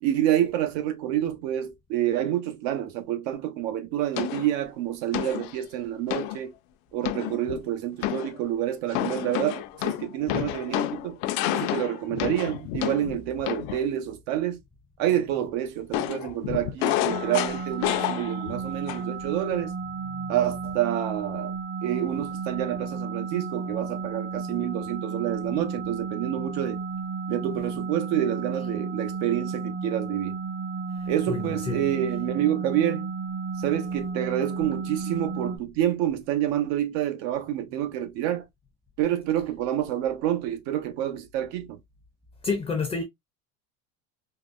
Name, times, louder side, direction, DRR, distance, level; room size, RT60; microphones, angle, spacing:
voice 1, 0.0-6.5 6.9-11.2 11.5-14.6 15.0-19.7 20.3-21.5 21.8-26.8 27.3-30.4 31.1-33.1 33.6-38.4 39.0-41.8, right 11 dB, 90° right, 0.8 m, -28 dB
sound 1, 4.2-4.6 5.1-5.6 6.1-6.4 7.0-7.6 8.0-8.4 8.9-13.9 15.9-18.6 18.9-19.2, left 14 dB, 85° left, 0.5 m, -29 dB
sound 2, 17.1-35.6, right 4 dB, 35° right, 0.6 m, -33 dB
voice 2, 31.0-31.9 42.4-43.0, left 4 dB, 15° left, 0.4 m, -30 dB
3.9 x 2.0 x 2.4 m
cardioid pair, 155°, 37 cm